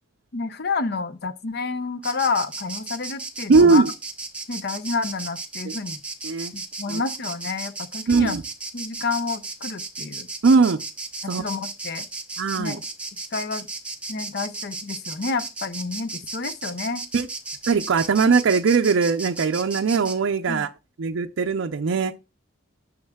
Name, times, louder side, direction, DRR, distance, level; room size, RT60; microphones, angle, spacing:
voice 1, 0.3-3.9 4.5-6.0 6.5-8.4 8.7-10.3 11.2-12.0 12.6-12.8 13.3-13.7 14.1-17.0 20.5-20.7, left 4 dB, 55° left, 0.6 m, -29 dB
Insect, 2.0-20.2, right 3 dB, 5° right, 0.9 m, -35 dB
voice 2, 3.5-3.9 5.6-5.7 6.2-6.5 6.9-7.0 8.1-8.4 10.4-10.8 11.3-11.4 12.4-12.8 17.1-17.3 17.7-20.7 21.0-22.1, right 4 dB, 75° right, 0.5 m, -20 dB
9.6 x 6.3 x 2.3 m
head